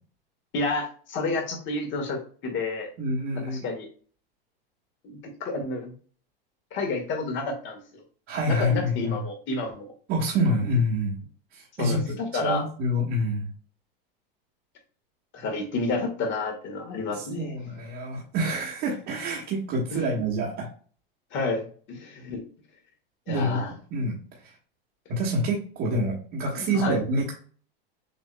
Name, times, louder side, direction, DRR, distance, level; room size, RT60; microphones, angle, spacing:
voice 1, 0.5-2.9 3.3-3.9 5.0-5.9 6.7-8.0 8.4-9.9 11.8-12.6 15.3-17.5 19.9-20.2 21.3-22.4 23.3-23.7 26.5-27.0, left 3 dB, 40° left, 2 dB, 1.8 m, -30 dB
voice 2, 3.0-3.7 8.3-9.2 10.1-11.2 11.5-12.0 12.4-13.5 17.2-20.7 23.3-23.6 23.9-24.2 25.1-27.3, equal, 45° right, -5 dB, 1.6 m, -27 dB
6.9 x 2.9 x 2.3 m, 0.43 s
supercardioid pair, 115°, 29 cm